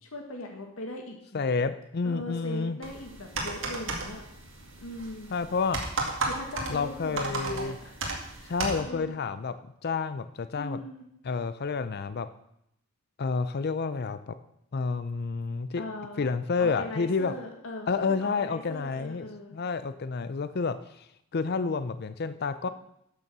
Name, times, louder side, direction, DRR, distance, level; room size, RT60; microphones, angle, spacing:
voice 1, 0.0-1.4 2.0-4.3 4.8-5.6 6.2-9.1 10.5-11.0 15.8-16.3 16.6-19.5, left 1 dB, 75° left, 2 dB, 1.6 m, -40 dB
voice 2, 1.3-2.8 5.3-5.8 6.7-7.8 8.5-9.6 9.8-10.8 11.2-12.3 13.2-14.3 14.7-15.8 16.2-17.3 17.9-19.2 19.5-21.1 21.3-22.7, left 4 dB, 50° left, 12 dB, 0.5 m, -29 dB
sound 1, 2.8-8.8, right 3 dB, 65° right, 2.2 m, -34 dB
12.0 x 7.0 x 6.0 m, 0.78 s
head